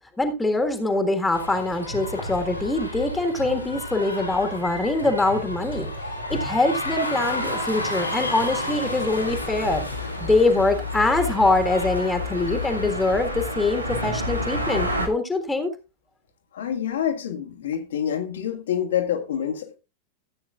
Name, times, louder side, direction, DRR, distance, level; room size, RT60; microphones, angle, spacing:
voice 1, 0.2-5.9 6.3-9.8 10.2-15.7, left 2 dB, 10° left, 1.7 m, -23 dB
sound 1, 1.3-13.2, left 1 dB, 85° left, 2.7 m, -32 dB
sound 2, 9.1-15.1, left 1 dB, 90° right, 1.8 m, -30 dB
voice 2, 16.5-19.8, left 9 dB, 60° left, 1.7 m, -27 dB
15.0 x 8.6 x 2.4 m
figure-of-eight pair, 90°, 0 cm